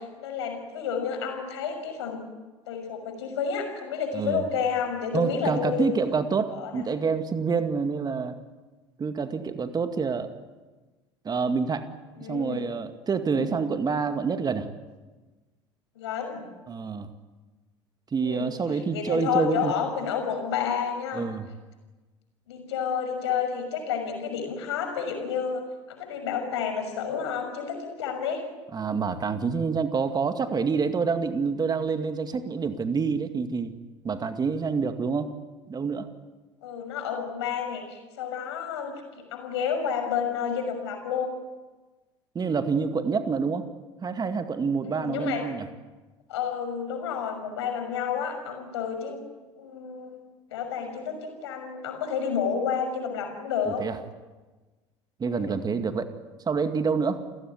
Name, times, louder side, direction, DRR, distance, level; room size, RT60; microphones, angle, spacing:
voice 1, 0.0-2.2 2.7-6.0 6.6-6.9 12.2-12.7 13.3-13.5 16.0-16.4 18.2-18.5 18.9-21.3 22.5-28.4 36.6-41.4 44.8-45.5 46.3-49.2 49.6-50.2 50.5-53.9 55.3-55.6, left 7 dB, 70° left, 5 dB, 6.2 m, -30 dB
voice 2, 4.1-4.5 5.1-8.4 9.0-10.3 11.2-11.9 12.2-14.7 16.7-17.1 18.1-19.7 21.1-21.5 28.7-33.7 34.0-35.3 35.7-36.1 42.3-43.7 44.0-45.7 53.7-54.0 55.2-56.1 56.5-57.2, right 5 dB, 25° right, 8 dB, 2.2 m, -27 dB
30.0 x 17.0 x 9.7 m, 1.2 s
figure-of-eight pair, 65°, 15 cm